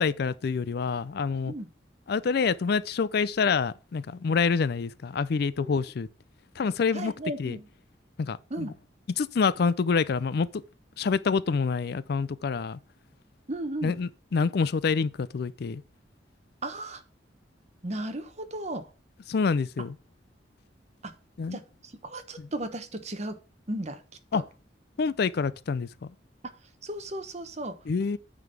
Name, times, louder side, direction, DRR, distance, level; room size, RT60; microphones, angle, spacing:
voice 1, 0.0-1.5 2.1-6.1 6.6-7.1 7.4-7.6 8.2-8.7 9.2-10.6 11.0-12.8 13.8-15.8 19.3-19.9 21.4-21.6 22.4-22.5 24.3-24.4 25.0-25.9 27.9-28.2, left 5 dB, 60° left, 0.4 m, -27 dB
voice 2, 6.9-7.7 8.5-8.8 13.5-14.0 16.6-17.0 17.8-18.9 21.0-21.1 21.5-23.4 23.7-24.0 24.3-24.4 26.4-26.6 26.8-27.8, right 1 dB, 35° right, 1.0 m, -35 dB
9.3 x 3.9 x 6.6 m
head